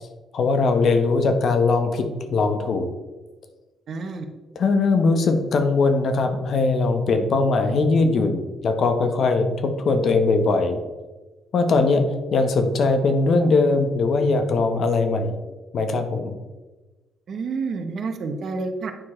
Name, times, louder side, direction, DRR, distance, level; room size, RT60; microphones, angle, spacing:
voice 1, 0.3-2.9 4.5-10.8 11.5-12.0 12.3-15.3 15.7-16.3, left 3 dB, 60° left, 6 dB, 1.1 m, -20 dB
voice 2, 3.9-4.3 17.3-18.9, right 4 dB, 60° right, 6 dB, 1.0 m, -29 dB
9.2 x 4.6 x 4.3 m, 1.2 s
cardioid pair, 90°, 0 cm